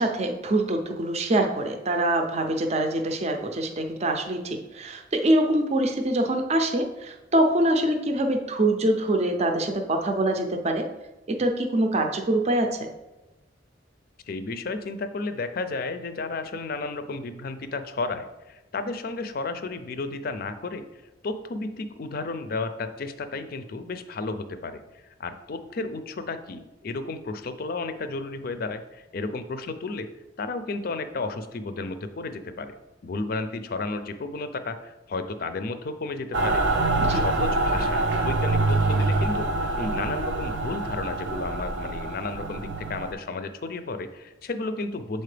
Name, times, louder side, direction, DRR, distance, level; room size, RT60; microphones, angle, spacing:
voice 1, 0.0-10.9 11.3-12.9 37.0-37.2, right 1 dB, 35° right, 4 dB, 0.5 m, -24 dB
voice 2, 14.3-20.9 21.2-30.1 30.4-32.7 33.0-39.5 39.8-45.2, left 3 dB, 55° left, 10 dB, 0.5 m, -33 dB
Mechanical fan, 36.3-43.1, right 2 dB, 80° right, 0.6 m, -25 dB
6.7 x 4.3 x 3.3 m, 1.0 s
head